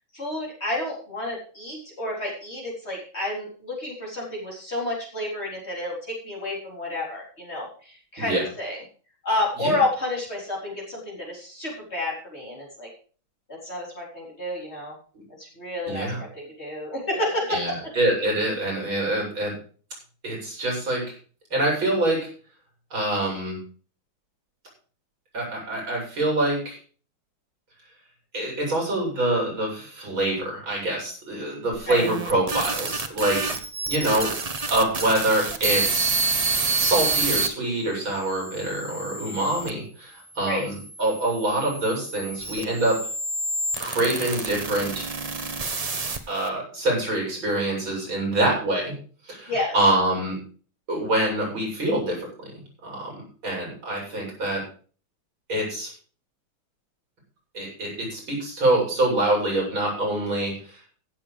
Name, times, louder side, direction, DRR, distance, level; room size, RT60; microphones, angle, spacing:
voice 1, 0.1-8.8 9.2-12.9 13.5-15.0 15.4-17.9 31.9-32.0 40.4-40.6 49.5-49.7, left 2 dB, 30° left, -3 dB, 4.3 m, -30 dB
voice 2, 15.9-16.2 17.5-19.5 20.2-21.0 21.5-22.2 22.9-23.6 25.3-26.8 28.3-33.5 33.9-34.3 34.7-36.1 36.8-43.0 43.8-45.1 46.3-48.9 49.3-50.4 50.9-54.6 55.5-55.9 57.5-60.9, right 1 dB, 75° right, -2 dB, 7.5 m, -25 dB
sound 1, 31.7-37.5 38.1-39.7 40.5-46.5, right 3 dB, 35° right, 0.6 m, -28 dB
16.0 x 7.3 x 5.0 m, 0.41 s
omnidirectional pair, 2.2 m